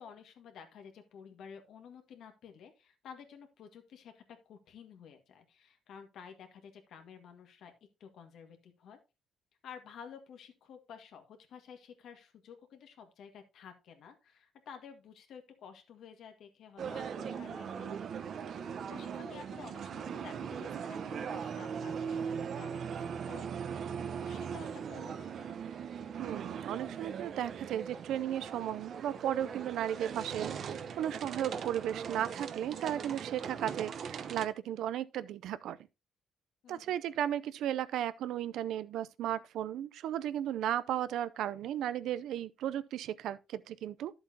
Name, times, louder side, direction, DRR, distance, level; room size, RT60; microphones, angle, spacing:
voice 1, 0.0-7.7 8.0-9.0 9.6-18.0 18.6-23.5 24.2-25.5 36.6-37.0, left 7 dB, 75° left, 1.7 m, -52 dB
sound 1, 16.8-34.5, right 7 dB, 60° right, 0.8 m, -40 dB
voice 2, 26.2-35.8 36.7-44.2, right 11 dB, 80° right, 0.5 m, -35 dB
11.0 x 7.8 x 2.8 m
cardioid pair, 90°, 0 cm